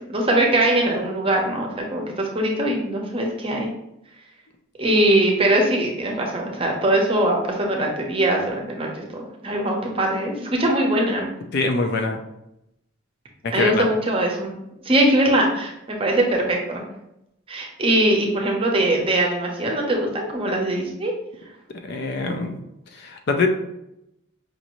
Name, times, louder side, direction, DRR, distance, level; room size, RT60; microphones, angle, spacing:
voice 1, 0.1-3.7 4.8-11.3 13.5-14.5 14.8-16.8 17.5-21.1, right 1 dB, 25° right, 0 dB, 0.7 m, -21 dB
voice 2, 11.5-12.2 13.4-13.9 21.8-22.6 22.9-23.5, left 3 dB, 50° left, 5 dB, 0.4 m, -23 dB
5.0 x 2.6 x 3.0 m, 0.84 s
head